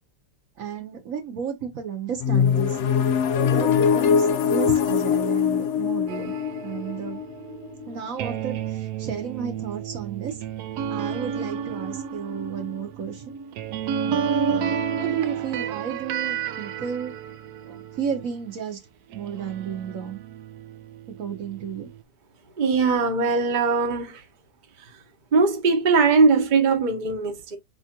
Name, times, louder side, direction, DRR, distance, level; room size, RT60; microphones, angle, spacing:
voice 1, 0.6-2.8 3.4-6.3 6.6-7.2 7.9-10.4 10.9-13.3 14.0-17.1 17.6-18.8 19.1-20.2 21.2-21.9, right 7 dB, 60° right, 1.2 m, -33 dB
sound 1, 2.2-8.0, left 7 dB, 75° left, 0.6 m, -22 dB
sound 2, 6.1-18.6 19.1-22.0, right 7 dB, 75° right, 1.1 m, -31 dB
voice 2, 22.6-24.2 25.3-27.6, right 4 dB, 35° right, 0.8 m, -20 dB
4.6 x 3.7 x 2.8 m
omnidirectional pair, 1.8 m